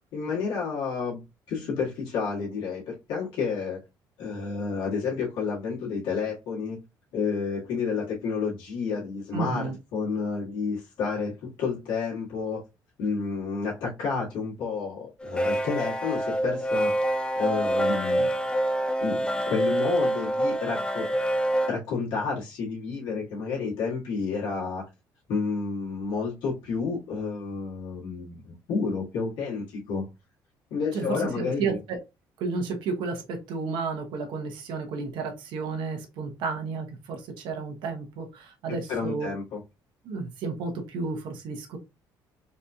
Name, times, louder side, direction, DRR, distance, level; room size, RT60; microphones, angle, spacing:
voice 1, 0.1-1.2 1.5-3.8 4.2-6.8 7.1-12.6 13.0-18.3 19.0-21.1 21.7-24.8 25.3-30.1 30.7-31.8 38.7-39.6, left 5 dB, 80° left, 1.7 m, -30 dB
voice 2, 9.3-9.8 30.9-32.0 32.4-39.3 40.0-41.8, right 4 dB, 80° right, 0.9 m, -32 dB
sound 1, 15.2-21.7, right 1 dB, 10° left, 0.5 m, -26 dB
4.1 x 2.7 x 2.3 m
cardioid pair, 100°, 8 cm